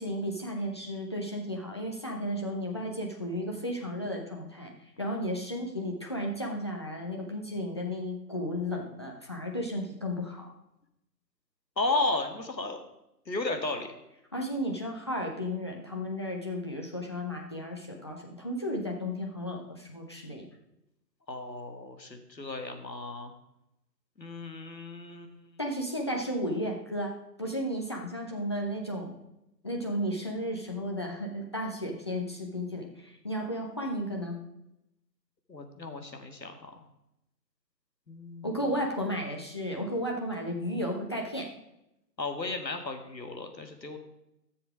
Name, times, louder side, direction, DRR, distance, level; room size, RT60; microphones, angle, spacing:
voice 1, 0.0-4.7 5.0-10.4 14.3-20.5 25.6-27.1 27.4-29.1 29.6-34.4 38.4-41.5, equal, 15° left, -1 dB, 0.6 m, -33 dB
voice 2, 11.8-12.8 13.3-13.9 21.3-23.3 24.2-25.6 35.5-36.7 38.1-38.6 42.2-44.0, left 2 dB, 85° left, 5 dB, 2.0 m, -34 dB
13.5 x 7.1 x 4.8 m, 0.86 s
figure-of-eight pair, 140°, 50 cm